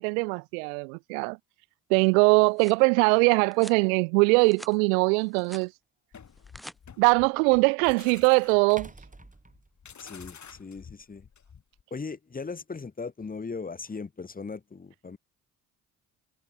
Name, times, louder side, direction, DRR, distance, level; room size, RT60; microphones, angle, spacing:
voice 1, 0.0-1.4 1.9-5.7 7.0-8.9, right 34 dB, 80° right, 0.6 m, -22 dB
sound 1, 2.2-2.8 3.5-3.8 4.3-4.8 5.1-5.7 6.3-6.8, equal, ahead, 2.5 m, -47 dB
sound 2, 4.9-5.0 7.5-7.6 8.7-10.3, right 2 dB, 20° right, 7.0 m, -48 dB
sound 3, 6.1-11.8, left 7 dB, 45° left, 4.2 m, -50 dB
voice 2, 10.0-11.3 11.9-15.2, left 4 dB, 20° left, 1.1 m, -38 dB
hypercardioid pair, 50°, 41 cm